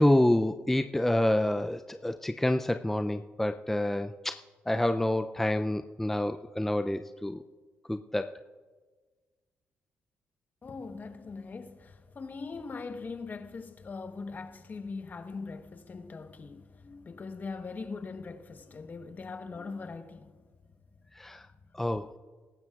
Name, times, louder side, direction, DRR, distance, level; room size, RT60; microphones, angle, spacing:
voice 1, 0.0-4.4 4.7-7.4 7.9-8.2 21.2-21.4 21.8-22.1, left 1 dB, 5° left, 0.4 m, -27 dB
voice 2, 10.6-20.4, left 4 dB, 40° left, 1.1 m, -41 dB
22.0 x 12.0 x 2.4 m
cardioid pair, 85°, 5 cm